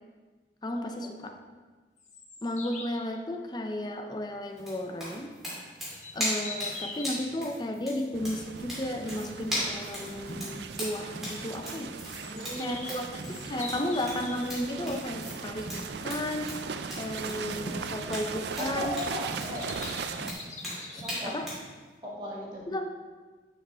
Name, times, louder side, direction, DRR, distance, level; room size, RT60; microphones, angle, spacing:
voice 1, 0.6-1.3 2.4-5.3 6.1-11.9 12.6-16.5 17.0-19.0 20.9-21.5 22.7-22.8, left 1 dB, 25° left, 5 dB, 0.6 m, -34 dB
sound 1, 2.0-3.0 5.9-7.2 12.0-14.6 19.0-21.2, left 3 dB, 40° left, 1.0 m, -42 dB
sound 2, 4.6-21.7, equal, ahead, 2.4 m, -38 dB
sound 3, 8.1-20.3, right 5 dB, 70° right, 0.4 m, -39 dB
voice 2, 12.2-12.9 18.6-19.7 21.0-21.4 22.0-22.6, equal, 25° right, -5 dB, 1.8 m, -37 dB
10.5 x 5.0 x 3.4 m, 1.3 s
head